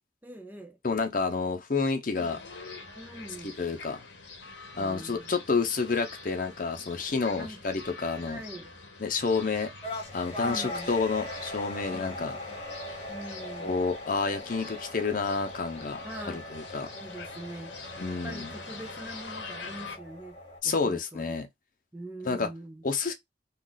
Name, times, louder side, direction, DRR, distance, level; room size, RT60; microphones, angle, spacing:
voice 1, 0.2-0.8 2.1-2.4 2.9-3.6 4.8-5.3 7.4-7.6 8.2-8.7 10.4-11.0 11.9-12.6 13.1-13.8 16.0-16.4 16.9-17.7 18.0-20.4 20.6-21.3 21.9-22.8, right 1 dB, 10° right, 0.5 m, -43 dB
voice 2, 0.8-2.4 3.6-4.0 4.7-8.4 9.0-9.7 10.1-12.4 13.6-16.0 16.2-16.9 18.0-18.5 20.6-21.5 22.2-22.5 22.8-23.1, left 4 dB, 50° left, 0.7 m, -29 dB
sound 1, 2.1-20.0, left 3 dB, 85° left, 0.9 m, -45 dB
sound 2, 9.8-20.6, left 1 dB, 35° left, 0.9 m, -40 dB
2.4 x 2.3 x 3.8 m
head